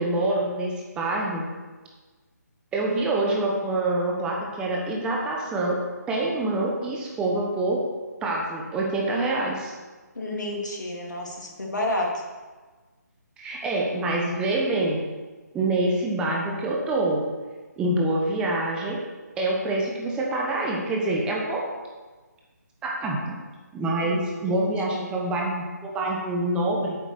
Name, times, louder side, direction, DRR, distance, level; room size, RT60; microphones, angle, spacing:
voice 1, 0.0-1.4 2.7-7.9 8.2-9.7 13.4-15.0 15.5-17.2 17.8-19.0 19.4-21.7 22.8-23.4 23.7-27.0, right 2 dB, 10° right, -2 dB, 1.1 m, -26 dB
voice 2, 10.1-12.2 24.0-24.1 24.5-25.1, left 1 dB, 80° left, -1 dB, 3.2 m, -30 dB
8.5 x 7.7 x 6.8 m, 1.3 s
figure-of-eight pair, 155°, 10 cm